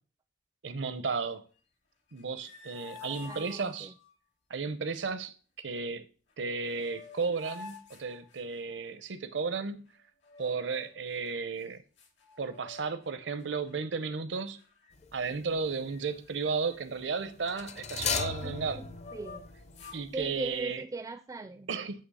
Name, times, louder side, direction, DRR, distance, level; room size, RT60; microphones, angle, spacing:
voice 1, 0.6-1.4 2.1-3.9 4.5-5.3 5.6-6.0 6.4-9.9 10.4-11.8 12.4-14.6 15.1-18.8 19.9-20.8 21.7-22.0, right 4 dB, 80° right, 0.7 m, -34 dB
sound 1, 2.1-4.1 6.3-6.4 6.7-8.9 10.2-11.1 11.6-11.7 12.0-13.1 13.4-13.7 14.3-14.9 15.2-15.4 15.7-18.6 19.0-20.0, left 4 dB, 80° left, 2.2 m, -49 dB
voice 2, 3.0-3.9 18.4-18.9 19.1-19.4 20.1-21.7, right 2 dB, 20° right, 0.3 m, -39 dB
sound 2, 15.0-15.4 17.5-20.3 20.5-20.6, left 6 dB, 40° left, 0.5 m, -36 dB
8.7 x 3.1 x 5.5 m
head